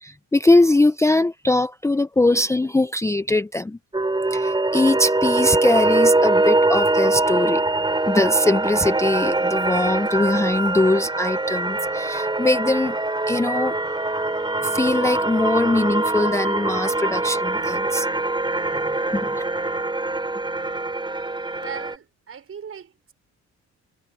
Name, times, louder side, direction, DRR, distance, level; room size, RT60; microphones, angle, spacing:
voice 1, 0.0-3.8 4.3-7.7 8.1-13.0 13.3-13.8 14.6-18.1 19.1-19.4, left 2 dB, 10° left, 0.6 m, -21 dB
sound 1, 3.9-22.0, right 2 dB, 15° right, 4.2 m, -23 dB
voice 2, 21.6-23.1, right 7 dB, 45° right, 5.5 m, -38 dB
cardioid pair, 90°, 30 cm